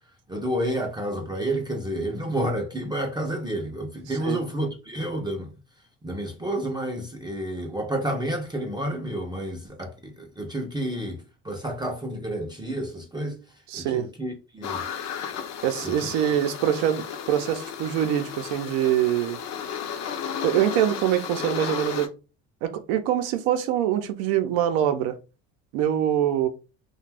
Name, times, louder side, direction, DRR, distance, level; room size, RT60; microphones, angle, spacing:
voice 1, 0.3-5.6 6.0-14.9 15.8-16.1, right 1 dB, 10° right, 0.4 m, -30 dB
voice 2, 13.7-14.1 15.6-19.4 20.4-22.1 22.6-25.1 25.7-26.5, right 11 dB, 80° right, 0.6 m, -24 dB
sound 1, 14.6-22.1, left 7 dB, 50° left, 0.5 m, -34 dB
2.5 x 2.2 x 3.3 m
supercardioid pair, 100°, 35 cm